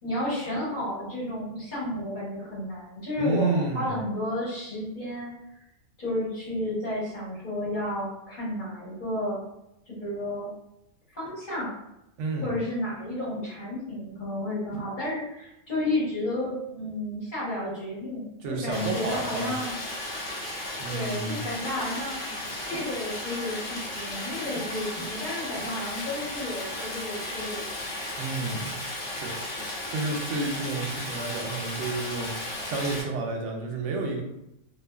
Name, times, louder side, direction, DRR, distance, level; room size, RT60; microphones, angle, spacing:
voice 1, 0.0-5.3 6.0-9.4 9.9-10.5 11.1-11.7 12.4-19.8 20.9-22.2 22.7-27.6, left 1 dB, 40° left, -7 dB, 1.1 m, -32 dB
voice 2, 3.2-4.0 12.2-12.5 18.4-19.5 20.8-21.4 28.2-28.8 29.1-29.3 29.9-32.3 32.6-34.2, right 3 dB, 70° right, 1 dB, 0.8 m, -30 dB
Stream, 18.7-33.0, left 1 dB, 65° left, 1.0 m, -35 dB
2.5 x 2.4 x 2.3 m, 0.85 s
omnidirectional pair, 1.5 m